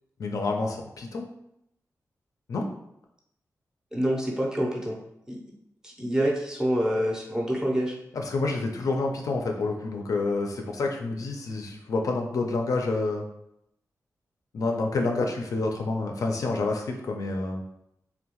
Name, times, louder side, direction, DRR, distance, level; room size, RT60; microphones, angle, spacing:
voice 1, 0.2-1.3 2.5-2.7 8.1-13.2 14.5-17.6, left 3 dB, 65° left, 2 dB, 0.4 m, -28 dB
voice 2, 3.9-5.0 5.3-5.4 5.8-8.0, equal, 10° right, -2 dB, 0.5 m, -26 dB
2.6 x 2.1 x 2.9 m, 0.79 s
wide cardioid pair, 155°, 6 cm